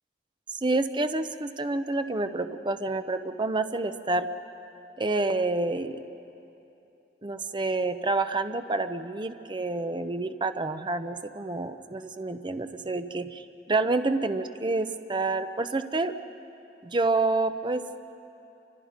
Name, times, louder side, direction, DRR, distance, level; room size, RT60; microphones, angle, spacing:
voice 1, 0.6-4.3 5.0-6.0 7.2-16.1 16.8-17.8, right 2 dB, 25° right, 9 dB, 0.7 m, -28 dB
28.5 x 25.0 x 5.1 m, 2.9 s
head